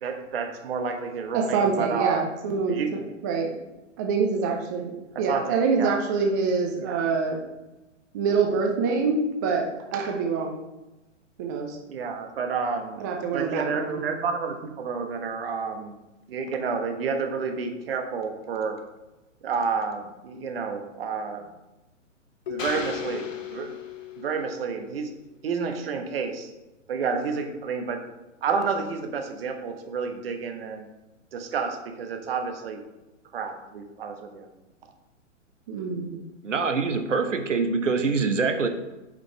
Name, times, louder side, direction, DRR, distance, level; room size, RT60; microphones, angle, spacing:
voice 1, 0.0-2.2 2.7-3.0 5.2-6.0 6.8-7.0 11.9-13.1 13.3-15.9 16.3-18.8 19.4-21.5 22.5-23.7 24.2-25.1 25.4-26.5 26.9-28.0 28.4-30.9 31.3-32.8 33.3-34.5, right 5 dB, 50° right, 5 dB, 1.2 m, -30 dB
voice 2, 1.3-3.6 4.0-7.4 8.1-10.6 11.4-11.8 13.0-14.1 35.7-36.2, right 5 dB, 15° right, 2 dB, 0.4 m, -26 dB
Keyboard (musical), 22.5-25.3, left 14 dB, 40° left, 0.7 m, -38 dB
sound 1, 22.6-24.3, left 4 dB, 85° left, 0.9 m, -38 dB
voice 3, 36.4-38.7, right 4 dB, 70° right, 6 dB, 1.1 m, -24 dB
8.3 x 5.2 x 4.1 m, 1.0 s
figure-of-eight pair, 120°, 38 cm